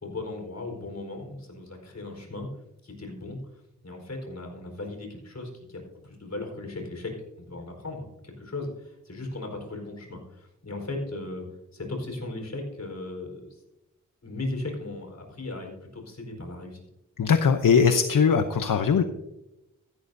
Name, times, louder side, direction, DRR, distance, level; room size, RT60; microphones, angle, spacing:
voice 1, 0.0-2.5 2.8-3.4 3.8-7.1 7.5-11.4 11.7-13.6 14.2-16.8, left 2 dB, 55° left, 2 dB, 4.5 m, -37 dB
voice 2, 17.2-19.0, left 6 dB, 75° left, 8 dB, 0.8 m, -20 dB
16.0 x 13.0 x 2.7 m, 0.92 s
cardioid pair, 60°, 33 cm